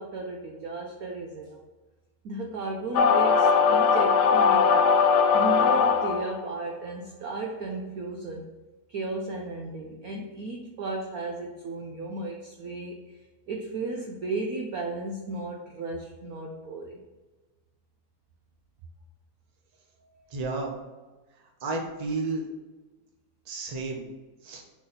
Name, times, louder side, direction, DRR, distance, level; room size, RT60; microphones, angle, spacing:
voice 1, 0.0-1.6 2.2-4.9 5.3-8.5 8.9-13.2 13.5-17.0 20.0-20.3, right 2 dB, 65° right, 0 dB, 0.9 m, -35 dB
sound 1, 2.9-6.4, left 5 dB, 75° left, 1.0 m, -20 dB
voice 2, 20.3-20.7 21.6-22.5 23.5-24.0 24.4-24.6, right 3 dB, 35° right, 0 dB, 0.6 m, -31 dB
4.8 x 4.1 x 5.7 m, 1.2 s
omnidirectional pair, 2.3 m